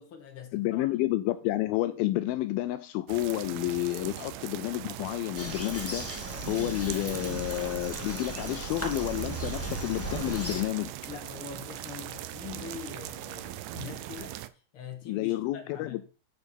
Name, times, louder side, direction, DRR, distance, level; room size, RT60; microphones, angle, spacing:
voice 1, 0.0-1.0 11.1-16.0, left 6 dB, 45° left, 2.2 m, -44 dB
voice 2, 0.5-6.1 6.4-10.9 15.1-16.1, left 16 dB, 85° left, 2.3 m, -30 dB
sound 1, 3.1-14.5, right 14 dB, 85° right, 1.9 m, -40 dB
Bird vocalization bird call bird song, 5.4-10.6, right 1 dB, 5° left, 1.3 m, -37 dB
11.0 x 5.0 x 5.2 m
omnidirectional pair, 4.4 m